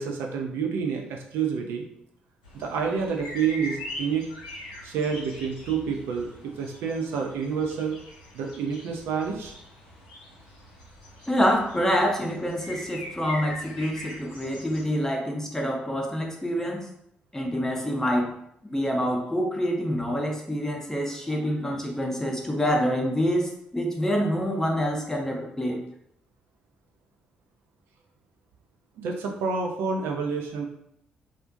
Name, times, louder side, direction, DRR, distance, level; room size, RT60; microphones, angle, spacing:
voice 1, 0.0-1.8 2.5-4.3 4.8-8.0 8.3-9.5 29.0-30.7, right 6 dB, 60° right, 1 dB, 0.3 m, -28 dB
sound 1, 2.4-14.9, left 1 dB, 80° left, 0.4 m, -42 dB
voice 2, 11.3-16.8 17.3-18.3 18.7-25.8, equal, 10° left, 1 dB, 0.5 m, -26 dB
2.4 x 2.1 x 2.5 m, 0.74 s
figure-of-eight pair, 40°, 4 cm